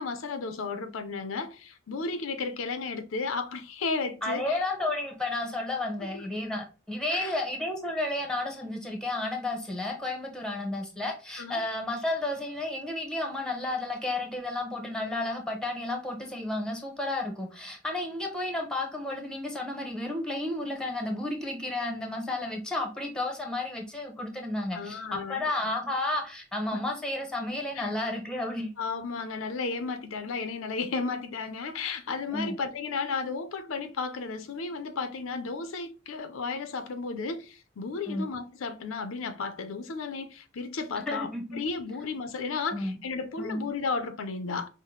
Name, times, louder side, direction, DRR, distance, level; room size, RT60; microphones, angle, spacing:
voice 1, 0.0-4.6 6.0-6.3 7.1-7.3 11.4-11.6 24.7-25.5 26.7-27.0 27.7-27.9 28.8-44.7, left 4 dB, 75° left, 0.5 m, -34 dB
voice 2, 4.2-28.7 32.3-32.6 38.1-38.3 41.0-41.6 42.7-43.0 43.4-43.7, left 2 dB, 5° left, 0.8 m, -32 dB
5.5 x 2.1 x 3.1 m
head